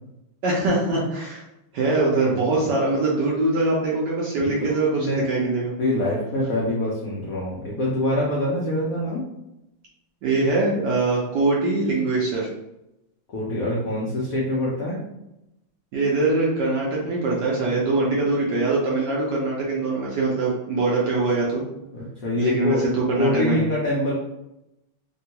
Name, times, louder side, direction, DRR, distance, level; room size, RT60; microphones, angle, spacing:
voice 1, 0.4-1.4 1.7-5.7 10.2-12.5 15.9-21.6 22.4-23.7, right 2 dB, 70° right, -4 dB, 1.0 m, -23 dB
voice 2, 2.2-2.7 4.4-4.5 4.9-5.3 5.8-9.3 13.3-15.0 21.9-22.8 23.1-24.1, left 1 dB, 80° left, -5 dB, 0.7 m, -25 dB
3.5 x 2.3 x 2.8 m, 0.88 s
omnidirectional pair, 2.4 m